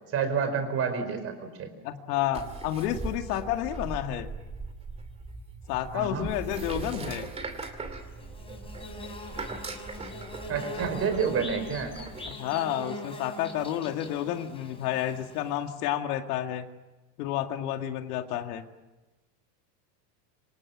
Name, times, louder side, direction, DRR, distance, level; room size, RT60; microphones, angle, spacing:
voice 1, 0.1-1.7 5.9-6.3 10.5-11.9, right 6 dB, 25° right, 9 dB, 4.7 m, -29 dB
voice 2, 1.8-4.3 5.7-7.3 12.3-16.7 17.2-18.6, left 11 dB, 65° left, 6 dB, 2.4 m, -30 dB
sound 1, 2.3-12.3, right 3 dB, 10° right, 2.5 m, -40 dB
Bird / Buzz, 8.0-15.7, left 1 dB, 10° left, 4.9 m, -43 dB
27.0 x 26.0 x 7.4 m, 1.1 s
supercardioid pair, 165°, 50 cm